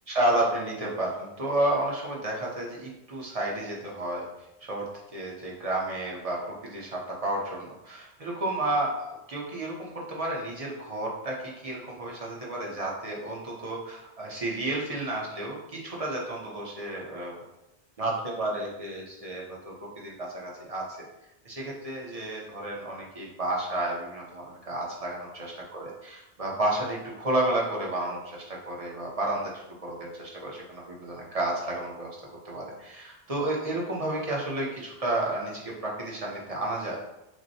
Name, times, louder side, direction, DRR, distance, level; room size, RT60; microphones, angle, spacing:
voice 1, 0.1-4.3 4.6-17.4 18.0-20.9 21.4-32.1 32.4-37.0, right 1 dB, 35° right, -3 dB, 0.9 m, -31 dB
6.1 x 2.1 x 2.7 m, 0.92 s
omnidirectional pair, 1.1 m